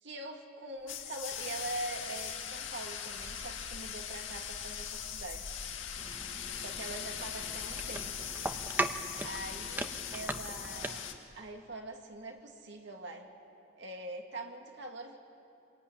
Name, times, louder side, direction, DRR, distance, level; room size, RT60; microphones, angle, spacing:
voice 1, 0.0-5.5 6.6-8.6 9.2-13.3 13.7-15.2, right 2 dB, 60° right, 2 dB, 2.3 m, -43 dB
sound 1, 0.8-0.9 1.2-11.4, equal, 90° right, 6.9 m, -53 dB
sound 2, 0.9-11.1, left 9 dB, 80° left, 2.2 m, -41 dB
sound 3, 6.0-11.2, right 2 dB, 10° right, 1.0 m, -39 dB
26.5 x 21.5 x 9.9 m, 2.9 s
head